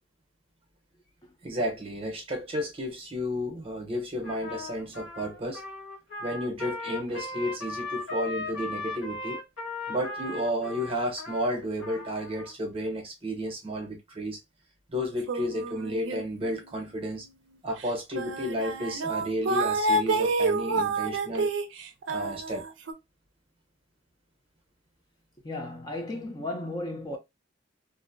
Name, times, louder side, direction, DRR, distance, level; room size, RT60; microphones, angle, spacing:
voice 1, 1.4-5.6 6.2-9.4 9.9-14.4 14.9-17.2 17.6-21.5 22.1-22.6, equal, 30° right, 0.7 m, -32 dB
Trumpet, 4.2-12.5, left 2 dB, 85° left, 1.0 m, -38 dB
sound 1, 15.3-16.6 17.0-17.2 17.9-18.0 18.2-22.9, right 2 dB, 70° right, 0.4 m, -28 dB
voice 2, 25.4-27.2, left 2 dB, 20° left, 0.4 m, -35 dB
2.5 x 2.0 x 2.4 m
head